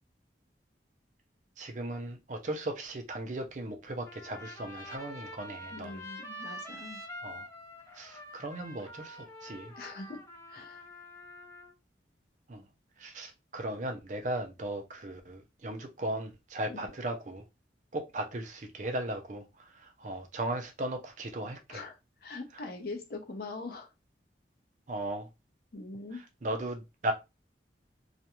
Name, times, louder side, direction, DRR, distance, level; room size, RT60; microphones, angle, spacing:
voice 1, 1.6-6.0 7.2-7.5 7.9-9.7 12.5-12.6 13.0-17.4 17.9-21.8 24.9-25.3 26.4-27.1, right 1 dB, 40° right, 0.5 m, -37 dB
Trumpet, 4.0-11.7, left 1 dB, 15° left, 0.5 m, -46 dB
voice 2, 5.7-7.0 9.8-10.2 10.5-10.8 16.7-16.9 21.7-23.9 25.7-26.2, left 3 dB, 55° left, 0.7 m, -42 dB
2.4 x 2.2 x 2.9 m
head